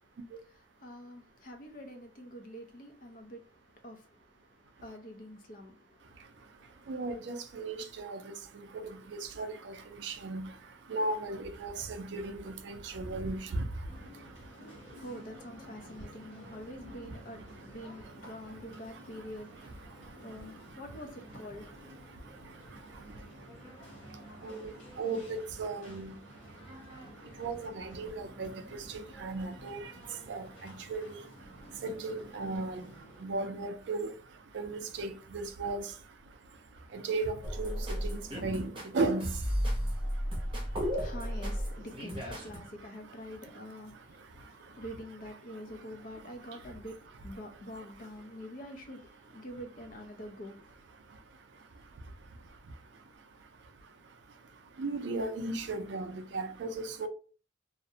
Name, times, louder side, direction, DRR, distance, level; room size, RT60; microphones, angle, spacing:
voice 1, 0.5-6.9 15.0-23.1 40.3-50.7, equal, 45° left, 0.5 m, -47 dB
voice 2, 6.9-8.2 9.4-9.8 10.0-10.5 10.9-11.7 12.0-13.6 24.4-24.7 25.0-26.1 27.4-28.5 29.2-29.8 30.3-31.2 31.8-32.9 33.2-34.1 34.5-35.8 36.9-37.7 38.0-39.3 54.8-57.1, right 3 dB, 60° right, 0.4 m, -35 dB
sound 1, 13.9-33.2, equal, 75° left, 1.3 m, -52 dB
sound 2, 37.4-42.6, equal, 25° right, 0.7 m, -34 dB
2.4 x 2.0 x 2.7 m
head